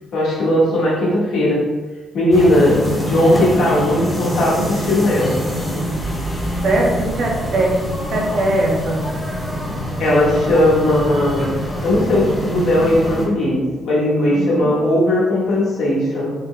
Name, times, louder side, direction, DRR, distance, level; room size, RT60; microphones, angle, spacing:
voice 1, 0.1-1.6 2.1-5.4 10.0-11.5 11.8-16.3, left 1 dB, 75° left, -6 dB, 1.4 m, -17 dB
sound 1, 2.3-13.3, equal, 15° left, 1.0 m, -25 dB
voice 2, 6.6-7.8 8.1-9.0 14.3-14.7, right 2 dB, 60° right, -1 dB, 0.8 m, -20 dB
3.7 x 2.2 x 3.8 m, 1.3 s
cardioid pair, 90°, 0 cm